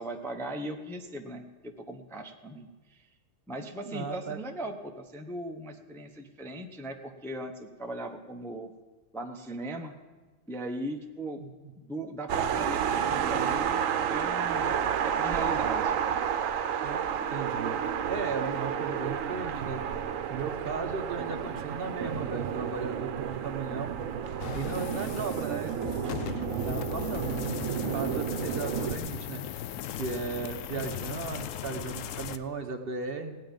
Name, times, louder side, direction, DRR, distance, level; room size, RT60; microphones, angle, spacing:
voice 1, 0.0-3.1 3.5-8.7 9.1-10.0 10.5-11.4 11.8-16.0, right 1 dB, ahead, 3 dB, 0.6 m, -39 dB
voice 2, 3.8-4.4 11.4-11.5 16.8-17.0 17.3-17.8 18.1-19.8 20.3-24.0 24.5-25.8 26.5-29.4 30.0-33.4, right 4 dB, 50° right, 6 dB, 1.1 m, -36 dB
sound 1, 12.3-29.0, right 8 dB, 85° right, 1.1 m, -31 dB
sound 2, 24.4-32.4, left 10 dB, 75° left, 1.0 m, -38 dB
17.0 x 9.5 x 5.3 m, 1.3 s
omnidirectional pair, 1.3 m